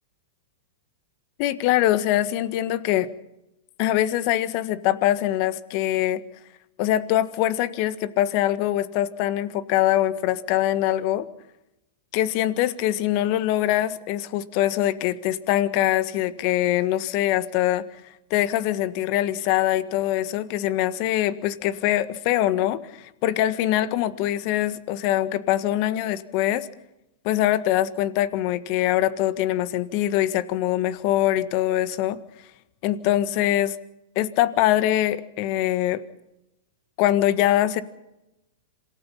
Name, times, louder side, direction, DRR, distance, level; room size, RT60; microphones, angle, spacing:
voice 1, 1.4-3.1 3.8-6.2 6.8-11.2 12.1-17.8 18.3-26.7 27.2-32.2 32.8-33.8 34.1-36.0 37.0-37.8, left 13 dB, 50° left, 13 dB, 1.5 m, -23 dB
27.0 x 18.0 x 5.8 m, 0.91 s
hypercardioid pair, 115°, 0 cm